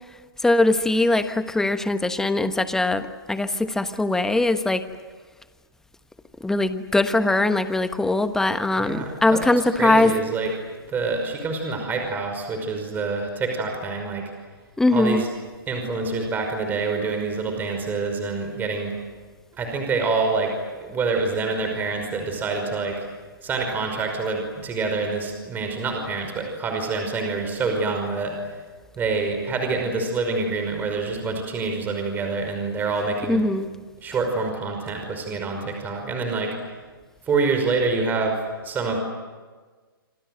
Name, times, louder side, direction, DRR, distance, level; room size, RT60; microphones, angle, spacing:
voice 1, 0.1-4.8 6.4-10.2 14.8-15.2 33.3-33.7, left 2 dB, 5° left, 10 dB, 1.2 m, -21 dB
voice 2, 8.8-9.4 9.8-10.5 10.9-14.2 14.9-15.3 15.7-18.9 19.6-20.5 20.8-23.0 23.4-28.4 29.0-33.4 34.0-36.5 37.3-38.4 38.6-39.0, right 4 dB, 15° right, 4 dB, 5.4 m, -26 dB
28.0 x 26.0 x 7.9 m, 1.4 s
hypercardioid pair, 135°, 12 cm